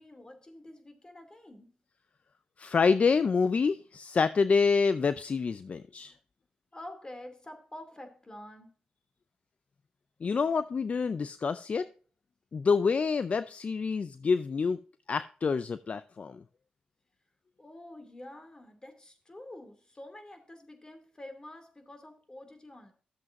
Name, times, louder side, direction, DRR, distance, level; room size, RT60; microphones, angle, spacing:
voice 1, 0.0-1.7 6.7-8.7 17.6-22.9, left 1 dB, 25° left, 2.7 m, -48 dB
voice 2, 2.6-6.1 10.2-11.9 12.5-14.8 15.1-16.4, left 5 dB, 50° left, 0.5 m, -27 dB
13.0 x 7.5 x 2.6 m
cardioid pair, 65°, 3 cm